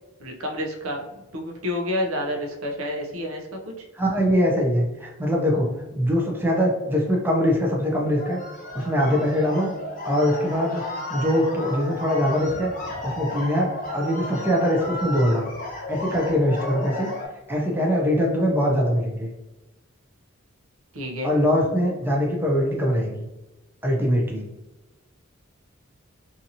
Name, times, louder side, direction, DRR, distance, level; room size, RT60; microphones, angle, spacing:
voice 1, 0.2-3.9 20.9-21.3, left 1 dB, 85° right, 2 dB, 0.6 m, -29 dB
voice 2, 3.9-8.4 8.7-9.7 10.0-10.8 11.1-12.7 13.0-15.5 15.9-17.1 17.5-19.3 21.2-23.3 23.8-24.5, equal, 10° right, -2 dB, 0.5 m, -22 dB
sound 1, 8.1-17.3, left 2 dB, 40° left, 0.9 m, -33 dB
2.8 x 2.6 x 2.6 m, 1.0 s
head